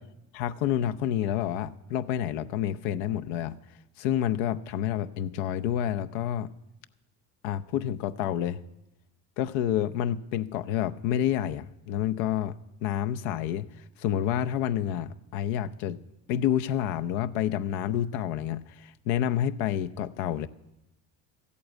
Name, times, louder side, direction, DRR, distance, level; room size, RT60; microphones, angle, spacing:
voice 1, 0.3-3.5 4.0-6.5 7.4-8.6 9.4-12.5 12.8-13.6 14.0-16.0 16.3-20.5, left 10 dB, 70° left, 10 dB, 0.8 m, -29 dB
14.0 x 8.6 x 8.1 m, 0.90 s
hypercardioid pair, 75°, 47 cm